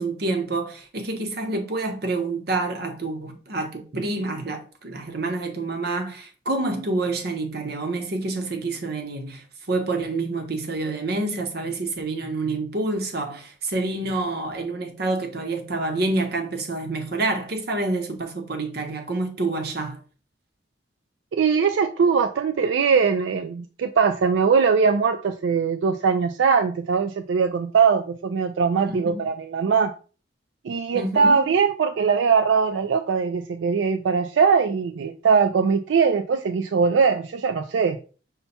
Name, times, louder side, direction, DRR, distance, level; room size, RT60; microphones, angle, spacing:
voice 1, 0.0-20.0 28.9-29.3 30.9-31.4, right 2 dB, 60° right, 0.9 m, -28 dB
voice 2, 21.3-29.9 30.6-38.0, right 5 dB, 85° right, 0.4 m, -21 dB
5.6 x 2.2 x 4.1 m
head